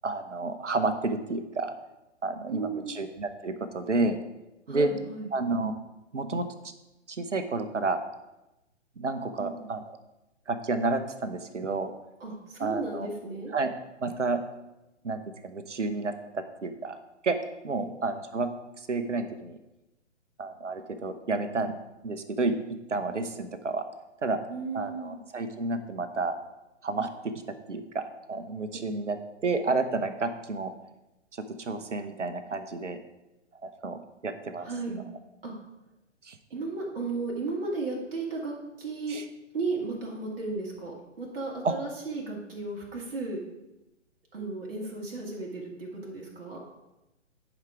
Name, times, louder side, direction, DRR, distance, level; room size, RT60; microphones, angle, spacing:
voice 1, 0.0-1.8 2.2-4.2 4.7-4.9 5.3-5.7 6.1-6.5 7.1-8.0 9.0-10.0 10.5-11.9 12.6-13.1 13.5-13.7 14.0-14.4 15.0-17.4 17.6-18.5 18.8-19.6 20.4-21.7 22.0-22.5 22.9-23.8 24.2-24.4 24.7-26.3 26.8-27.3 27.7-29.2 29.4-30.7 31.6-33.0 33.6-34.7 36.2-36.4 39.1-39.2 41.6-41.7, right 3 dB, 75° right, 9 dB, 1.0 m, -30 dB
voice 2, 2.4-3.0 4.7-5.3 9.4-9.8 12.2-13.5 17.8-18.0 24.5-25.2 28.7-28.9 34.6-35.1 35.4-35.5 36.5-39.2 39.5-43.4 44.3-46.6, right 3 dB, 50° right, -3 dB, 2.2 m, -35 dB
10.5 x 5.1 x 4.6 m, 0.97 s
figure-of-eight pair, 130°, 37 cm